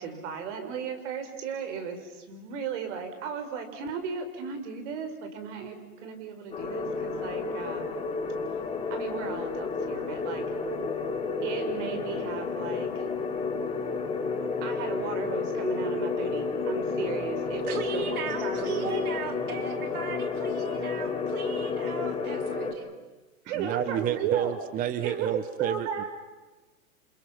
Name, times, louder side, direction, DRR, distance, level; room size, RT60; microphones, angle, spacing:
voice 1, 0.0-7.9 8.9-10.4 11.4-13.0 14.6-19.0 20.8-20.9 23.4-24.6 25.0-26.1, right 6 dB, 50° right, 7 dB, 5.1 m, -35 dB
sound 1, 6.5-22.7, left 4 dB, 15° left, 3.3 m, -31 dB
voice 2, 17.7-22.9, right 5 dB, 80° right, 7 dB, 2.6 m, -37 dB
voice 3, 23.6-26.1, right 9 dB, 20° right, 12 dB, 0.9 m, -29 dB
29.0 x 27.0 x 5.8 m, 1.2 s
hypercardioid pair, 130°, 44 cm